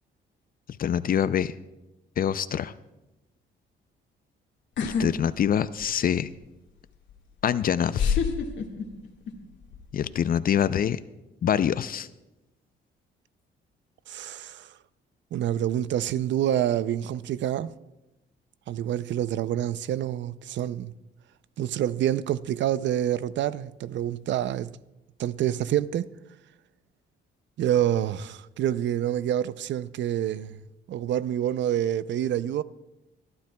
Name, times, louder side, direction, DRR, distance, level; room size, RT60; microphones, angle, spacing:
voice 1, 0.8-1.5 2.2-2.7 4.8-6.3 7.4-8.2 9.9-11.0 11.4-12.1, left 9 dB, 45° left, 0.4 m, -25 dB
sound 1, 4.8-5.1 5.4-6.1 7.1-7.2 7.9-9.3 9.6-10.0, left 6 dB, 70° left, 1.8 m, -26 dB
voice 2, 14.1-14.7 15.3-17.7 18.7-20.9 21.6-24.7 25.2-26.1 27.6-30.6 30.9-32.6, right 11 dB, 65° right, 0.5 m, -27 dB
25.5 x 12.0 x 2.3 m
cardioid pair, 90°, 20 cm